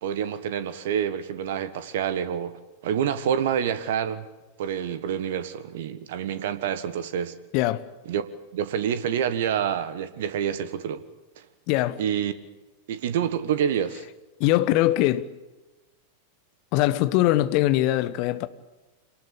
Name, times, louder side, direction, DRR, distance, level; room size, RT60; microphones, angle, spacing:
voice 1, 0.0-2.6 2.8-4.2 4.6-7.3 8.1-8.2 8.5-11.0 12.0-12.3 12.9-14.0, right 8 dB, 55° right, 1.5 m, -27 dB
voice 2, 7.5-7.8 11.7-12.0 14.4-15.3 16.7-18.5, left 15 dB, 45° left, 1.2 m, -22 dB
26.0 x 19.0 x 8.6 m
figure-of-eight pair, 90°, 0 cm